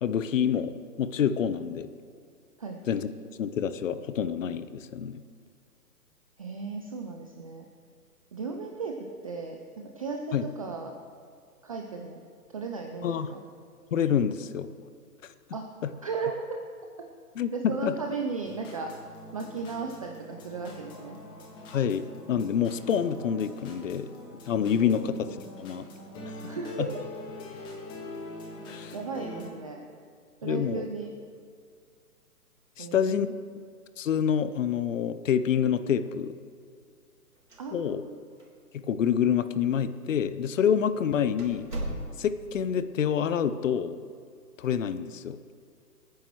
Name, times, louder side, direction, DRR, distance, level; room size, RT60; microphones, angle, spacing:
voice 1, 0.0-1.9 2.9-3.1 3.4-5.2 10.3-10.5 13.0-13.3 13.9-14.7 17.4-17.9 21.7-24.1 24.5-25.8 26.3-26.5 26.8-26.9 28.7-28.9 30.4-30.8 32.8-33.3 34.0-36.4 37.7-38.0 38.7-41.7 42.2-44.0 44.6-45.4, left 8 dB, 55° left, 13 dB, 0.7 m, -27 dB
voice 2, 6.4-7.7 8.3-9.0 9.2-10.9 11.6-12.2 12.5-13.4 15.5-15.6 16.0-16.6 17.5-18.9 19.3-21.2 24.8-25.0 26.5-26.9 28.9-29.8 30.4-31.1 32.8-33.3 37.6-38.1, right 4 dB, 25° right, 2 dB, 0.5 m, -36 dB
sound 1, 18.4-29.5, left 1 dB, 10° left, 0.7 m, -44 dB
sound 2, 37.4-38.1 38.4-38.5 39.3-39.4 40.1-40.3 40.7-40.8 41.4-42.5, right 1 dB, 90° right, 3.5 m, -37 dB
26.5 x 9.5 x 3.1 m, 2.2 s
hypercardioid pair, 140°, 46 cm